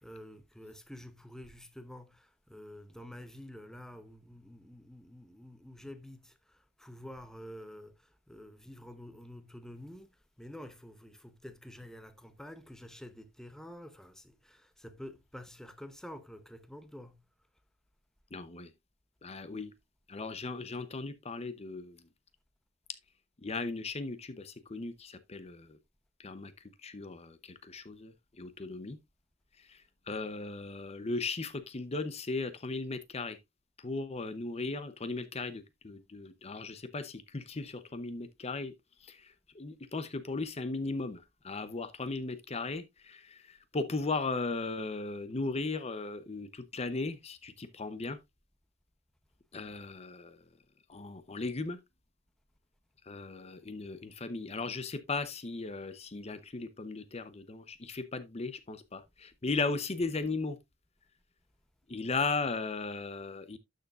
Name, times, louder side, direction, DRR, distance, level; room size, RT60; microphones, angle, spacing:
voice 1, 0.0-17.2, left 1 dB, 5° left, 0.8 m, -49 dB
voice 2, 18.3-18.7 19.2-19.7 20.1-22.0 23.4-25.8 26.2-26.5 26.8-29.0 29.6-29.8 30.1-33.4 33.8-38.7 39.0-48.2 49.5-50.4 50.9-51.8 53.1-60.6 61.9-63.6, left 3 dB, 30° left, 0.7 m, -37 dB
12.0 x 6.6 x 2.4 m
head